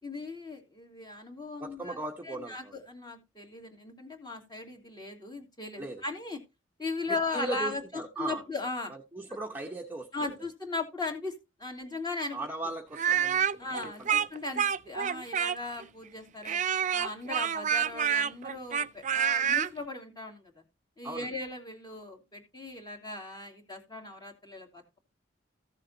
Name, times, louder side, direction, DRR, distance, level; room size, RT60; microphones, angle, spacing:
voice 1, 0.0-2.0 2.3-6.4 6.8-7.8 8.2-8.9 10.1-12.4 13.6-16.6 16.9-20.5 21.0-25.0, left 3 dB, 20° left, 2.7 m, -38 dB
voice 2, 1.6-2.8 5.8-6.0 7.1-8.4 8.9-10.3 12.3-14.2 21.0-21.3, right 2 dB, 10° right, 1.0 m, -38 dB
Speech, 12.9-15.8 16.5-19.7, right 8 dB, 40° right, 0.5 m, -28 dB
15.0 x 7.4 x 2.8 m
head